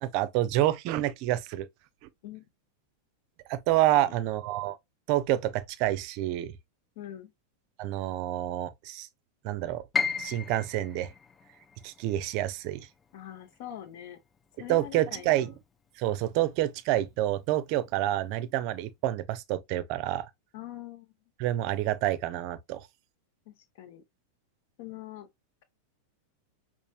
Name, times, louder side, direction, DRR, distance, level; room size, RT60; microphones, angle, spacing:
voice 1, 0.0-1.7 3.5-4.8 5.1-6.5 7.8-9.1 9.4-9.8 10.2-11.1 11.8-12.9 14.7-15.5 16.0-20.2 21.4-22.8, right 14 dB, 50° right, 0.5 m, -28 dB
voice 2, 7.0-7.3 13.1-14.2 14.6-15.6 20.5-21.1 23.5-24.0 24.8-25.3, left 11 dB, 55° left, 1.0 m, -43 dB
Piano, 9.9-15.9 16.2-17.4 17.8-17.9 18.6-18.9, left 5 dB, 20° left, 0.4 m, -37 dB
5.3 x 2.5 x 2.4 m
figure-of-eight pair, 95°, 0 cm